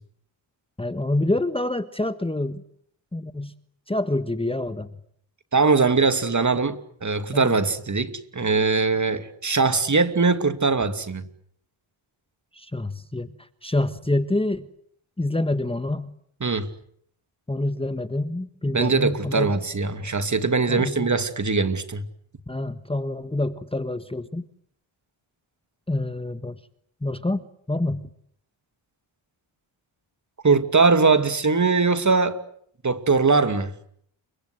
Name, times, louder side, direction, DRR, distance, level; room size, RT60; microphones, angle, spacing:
voice 1, 0.8-2.6 3.1-3.5 3.9-4.9 7.3-7.6 12.5-14.7 15.2-16.1 17.5-19.5 20.7-21.1 22.5-24.4 25.9-26.6 27.0-28.1, left 2 dB, 10° left, 1.4 m, -27 dB
voice 2, 5.5-11.2 16.4-16.7 18.7-22.0 30.4-32.4 32.8-33.7, right 4 dB, 35° right, 2.7 m, -21 dB
29.5 x 25.0 x 8.0 m
cardioid pair, 75°, 49 cm